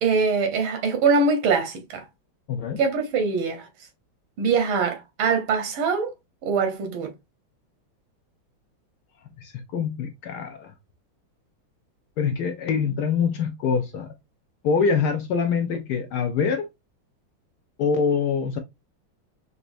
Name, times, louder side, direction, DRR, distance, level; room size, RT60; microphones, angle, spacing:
voice 1, 0.0-2.1 2.8-3.7 4.4-6.1 6.4-7.1, right 5 dB, 90° right, 1.7 m, -23 dB
voice 2, 2.5-2.8 9.4-10.7 12.2-14.1 14.6-16.7 17.8-18.6, left 6 dB, 75° left, 0.9 m, -24 dB
5.1 x 2.2 x 2.5 m
omnidirectional pair, 2.2 m